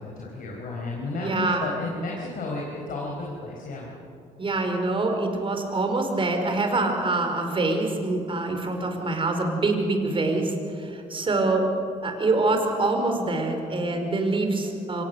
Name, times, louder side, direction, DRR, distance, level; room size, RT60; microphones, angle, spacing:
voice 1, 0.0-3.9, left 3 dB, 60° left, -2 dB, 4.5 m, -33 dB
voice 2, 1.1-1.6 4.4-11.7 12.0-15.0, right 2 dB, 35° right, 4 dB, 4.6 m, -25 dB
24.0 x 19.5 x 6.9 m, 2.6 s
supercardioid pair, 75°, 16 cm